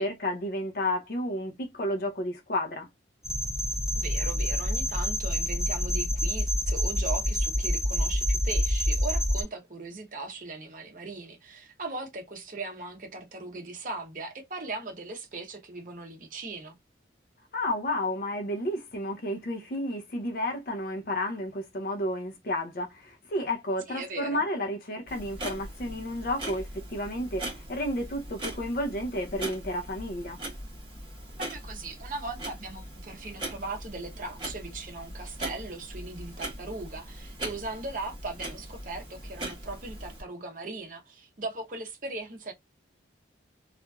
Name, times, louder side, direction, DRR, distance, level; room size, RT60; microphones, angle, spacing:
voice 1, 0.0-2.9 17.5-30.4, left 1 dB, 50° left, 0.5 m, -31 dB
sound 1, 3.2-9.4, equal, ahead, 0.4 m, -27 dB
voice 2, 3.9-16.7 23.9-24.4 31.4-42.5, right 3 dB, 45° right, 0.7 m, -39 dB
Clock, 25.1-40.2, right 1 dB, 30° right, 1.1 m, -40 dB
2.9 x 2.4 x 2.2 m
head